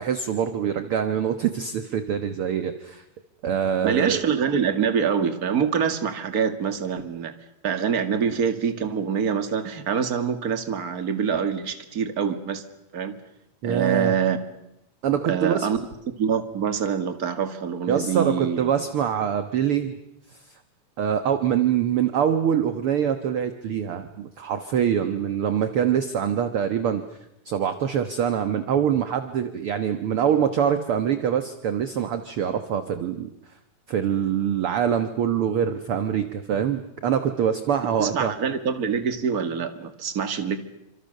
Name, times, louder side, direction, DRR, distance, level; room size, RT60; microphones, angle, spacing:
voice 1, 0.0-3.0 3.4-4.2 13.6-14.1 15.0-15.7 17.9-20.0 21.0-27.0 27.5-33.3 33.9-38.3, right 8 dB, 55° right, 9 dB, 1.9 m, -24 dB
voice 2, 3.8-7.3 7.6-12.6 12.9-13.2 13.6-14.4 15.3-15.8 16.2-18.7 38.0-40.6, right 7 dB, 35° right, 9 dB, 2.1 m, -25 dB
29.5 x 26.5 x 6.6 m, 0.86 s
omnidirectional pair, 3.4 m